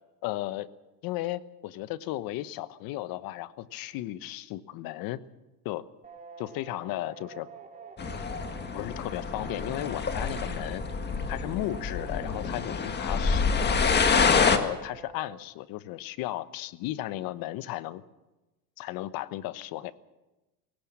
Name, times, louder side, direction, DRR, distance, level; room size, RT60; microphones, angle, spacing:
voice 1, 0.2-0.7 1.0-5.2 5.6-5.8 6.4-7.5 8.7-10.8 11.3-13.8 14.1-18.0 18.8-19.9, left 15 dB, 50° left, 15 dB, 1.1 m, -35 dB
sound 1, 6.0-15.4, right 4 dB, 15° right, 4.1 m, -47 dB
sound 2, 8.0-14.6, left 5 dB, 20° left, 1.8 m, -27 dB
20.5 x 18.5 x 7.5 m, 1.0 s
supercardioid pair, 115°, 46 cm